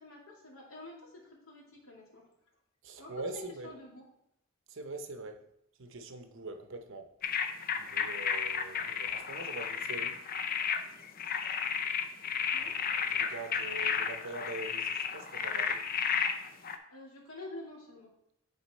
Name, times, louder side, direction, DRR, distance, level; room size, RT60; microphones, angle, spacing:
voice 1, 0.0-2.3 3.0-4.0 12.5-12.8 16.9-18.1, left 2 dB, 85° left, 2.4 m, -48 dB
voice 2, 2.8-3.7 4.7-5.4 5.8-7.1 7.8-10.2 12.6-15.8, right 2 dB, 65° right, 0.8 m, -43 dB
sound 1, 7.2-16.8, left 7 dB, 45° left, 0.6 m, -33 dB
9.5 x 4.1 x 4.2 m
head